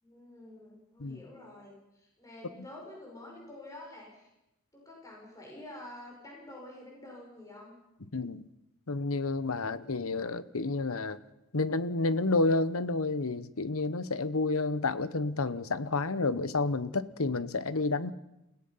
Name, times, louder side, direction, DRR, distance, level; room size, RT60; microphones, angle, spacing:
voice 1, 0.0-4.3 4.7-7.7, left 1 dB, 15° left, -2 dB, 5.5 m, -48 dB
voice 2, 8.1-8.4 8.9-11.2 11.5-18.1, left 3 dB, 75° left, 15 dB, 1.0 m, -30 dB
29.5 x 17.0 x 5.7 m, 0.89 s
head